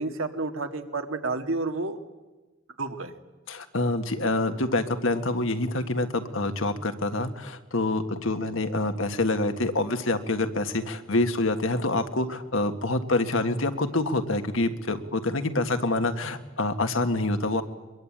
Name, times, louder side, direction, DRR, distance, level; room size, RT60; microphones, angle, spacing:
voice 1, 0.0-2.0 2.8-3.1, right 3 dB, 90° right, 6 dB, 1.8 m, -30 dB
voice 2, 3.5-17.6, left 2 dB, 80° left, 7 dB, 1.7 m, -26 dB
23.5 x 22.0 x 8.8 m, 1.2 s
head